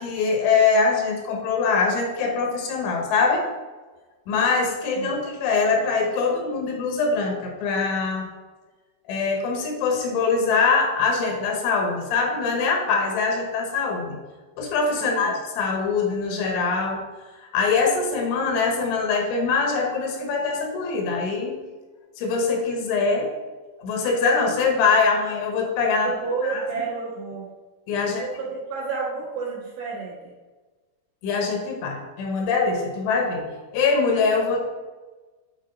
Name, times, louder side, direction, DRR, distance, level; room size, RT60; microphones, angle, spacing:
voice 1, 0.0-3.4 4.3-8.2 9.1-14.2 14.6-17.0 17.4-21.6 22.2-23.3 23.8-26.1 26.4-26.6 27.9-28.2 31.2-33.5 33.7-34.6, left 4 dB, 75° left, 1 dB, 3.3 m, -23 dB
voice 2, 15.0-15.4 26.0-27.5 28.0-30.3, right 5 dB, 65° right, -6 dB, 3.0 m, -31 dB
8.7 x 4.5 x 3.9 m, 1.3 s
omnidirectional pair, 5.6 m